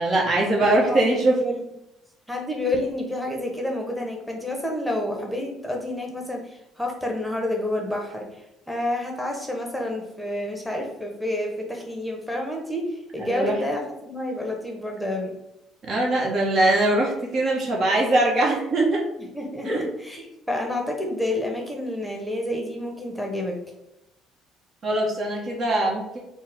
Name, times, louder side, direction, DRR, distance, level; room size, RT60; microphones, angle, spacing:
voice 1, 0.0-1.4 13.2-13.6 15.8-19.0 19.6-19.8 24.8-26.2, right 2 dB, 50° right, -1 dB, 1.1 m, -22 dB
voice 2, 0.6-1.6 2.3-8.3 8.7-15.3 19.2-23.6, left 1 dB, ahead, 1 dB, 0.9 m, -29 dB
4.3 x 2.2 x 3.5 m, 0.88 s
hypercardioid pair, 60°, 0 cm